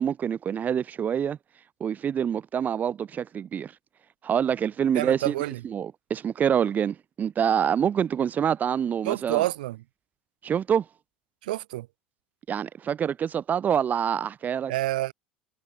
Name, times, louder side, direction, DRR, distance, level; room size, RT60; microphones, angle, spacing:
voice 1, 0.0-1.4 1.8-3.7 4.2-5.3 5.6-9.4 10.4-10.9 12.5-14.7, right 8 dB, 35° right, 4.5 m, -26 dB
voice 2, 4.9-5.6 9.0-9.8 11.4-11.9 14.7-15.1, right 17 dB, 65° right, 6.5 m, -28 dB
figure-of-eight pair, 70°, 5 cm